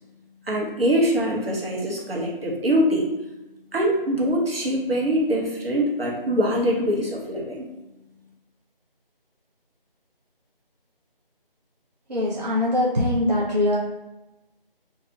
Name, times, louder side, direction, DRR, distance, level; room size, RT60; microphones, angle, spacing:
voice 1, 0.5-3.1 3.7-7.6, equal, 80° right, -2 dB, 0.8 m, -23 dB
voice 2, 12.1-13.8, left 1 dB, 50° right, -4 dB, 0.4 m, -22 dB
2.3 x 2.1 x 2.8 m, 1.0 s
figure-of-eight pair, 165°, 29 cm